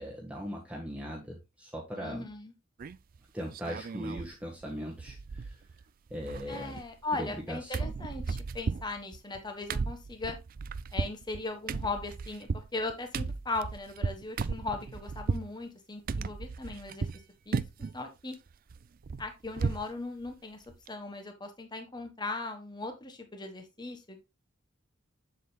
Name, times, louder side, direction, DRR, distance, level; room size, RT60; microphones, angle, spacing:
voice 1, 0.0-2.2 3.3-5.5 6.1-6.8 7.1-7.7, equal, 5° right, -3 dB, 1.4 m, -39 dB
voice 2, 1.9-2.5 6.5-10.4 10.9-17.1 17.5-17.6 17.9-18.4 19.2-24.2, left 3 dB, 25° left, 6 dB, 1.4 m, -38 dB
sound 1, 2.8-3.2 3.5-4.3 4.6-4.7 5.0-5.8 6.1-7.4 7.7-15.5 16.1-17.2 17.5-18.0 18.3-19.9 20.3-20.4 20.7-20.9, right 4 dB, 45° right, 0.4 m, -35 dB
7.6 x 7.5 x 2.3 m, 0.24 s
head